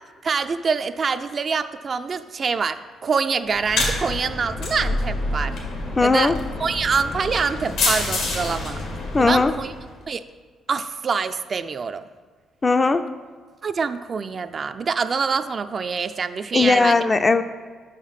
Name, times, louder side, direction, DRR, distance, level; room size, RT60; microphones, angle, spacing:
voice 1, 0.2-5.5 6.0-6.3 6.6-8.8 9.2-9.7 10.1-10.2 10.7-12.0 13.6-17.0, right 5 dB, 45° right, 10 dB, 0.3 m, -25 dB
sound 1, 3.5-9.9, left 2 dB, 80° left, 1.5 m, -27 dB
voice 2, 6.0-6.4 9.1-9.5 12.6-13.0 16.5-17.4, left 3 dB, 25° left, 9 dB, 0.4 m, -18 dB
5.4 x 5.0 x 5.7 m, 1.5 s
cardioid pair, 90°, 0 cm